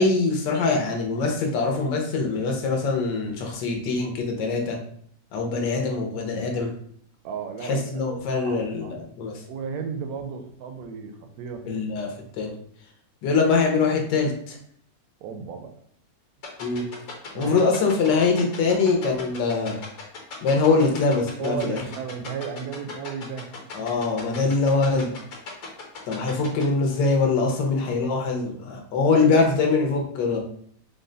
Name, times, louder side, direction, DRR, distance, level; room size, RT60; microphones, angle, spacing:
voice 1, 0.0-4.8 5.3-6.7 7.6-9.4 11.7-12.5 13.2-14.6 16.6-16.9 17.3-19.8 20.4-21.8 23.7-25.1 26.1-30.4, left 4 dB, 85° left, 1 dB, 1.4 m, -23 dB
voice 2, 7.2-8.0 8.3-8.9 9.5-11.8 15.2-15.7 17.3-17.7 18.1-18.2 21.4-23.5 27.7-27.9, right 6 dB, 70° right, 5 dB, 0.9 m, -34 dB
sound 1, 16.4-26.6, left 5 dB, 60° left, 1.3 m, -37 dB
3.9 x 2.1 x 3.8 m, 0.64 s
omnidirectional pair, 1.9 m